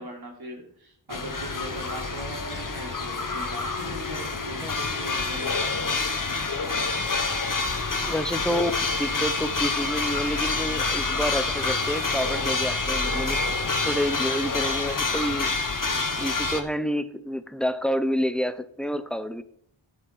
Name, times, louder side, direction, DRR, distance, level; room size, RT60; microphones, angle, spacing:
voice 1, 0.0-5.6, right 1 dB, 50° right, 3.6 m, -40 dB
sound 1, 1.1-16.6, left 3 dB, 40° left, 1.3 m, -27 dB
voice 2, 8.1-13.4 13.8-15.5 16.2-19.4, equal, ahead, 0.7 m, -29 dB
13.0 x 5.6 x 5.6 m
wide cardioid pair, 65°, 49 cm